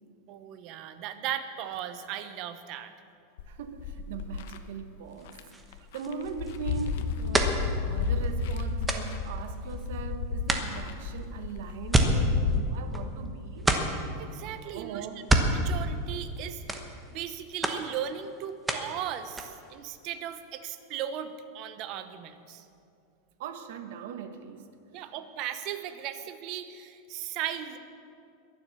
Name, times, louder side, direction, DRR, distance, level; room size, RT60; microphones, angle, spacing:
voice 1, 0.3-2.9 14.2-15.1 15.5-16.6 17.1-22.7 24.9-27.8, right 10 dB, 40° right, 10 dB, 0.9 m, -37 dB
sound 1, 3.4-4.6 5.3-5.4 5.7-12.6, left 5 dB, 65° left, 1.0 m, -32 dB
voice 2, 3.5-5.4 5.7-13.7 14.4-15.3 23.4-24.7 25.0-25.1, right 6 dB, 65° right, 9 dB, 1.2 m, -40 dB
sound 2, 5.2-10.0 10.4-13.3 13.6-14.2 15.1-16.4 16.7-17.3 17.6-19.0 19.2-19.7, right 2 dB, 10° right, 1.0 m, -30 dB
22.0 x 7.5 x 6.9 m, 2.5 s
supercardioid pair, 160°, 0 cm